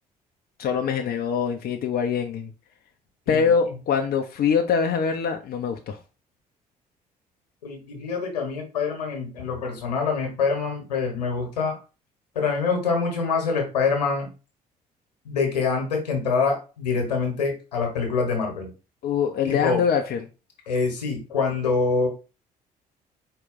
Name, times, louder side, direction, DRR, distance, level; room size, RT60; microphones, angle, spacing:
voice 1, 0.6-2.5 3.3-6.0 19.0-20.2, left 6 dB, 50° left, 0.6 m, -24 dB
voice 2, 7.6-11.8 12.3-14.3 15.2-18.7 19.4-19.8 20.7-22.1, left 4 dB, 85° left, 1.2 m, -25 dB
4.7 x 2.3 x 3.9 m
figure-of-eight pair, 45°, 20 cm